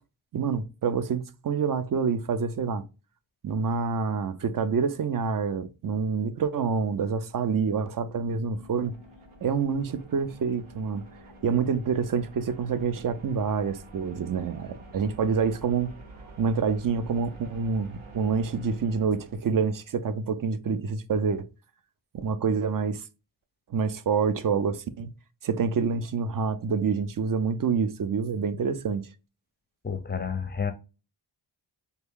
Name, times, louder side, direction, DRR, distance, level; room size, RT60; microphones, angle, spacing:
voice 1, 0.3-2.8 3.4-8.9 9.4-11.0 11.4-15.9 16.4-21.5 22.1-23.0 23.7-25.1 25.4-29.1, right 5 dB, 45° right, 0.4 m, -27 dB
sound 1, 7.5-20.0, right 2 dB, 85° right, 0.9 m, -49 dB
voice 2, 29.8-30.7, left 6 dB, 20° left, 0.5 m, -30 dB
3.3 x 2.2 x 3.5 m
cardioid pair, 60°, 48 cm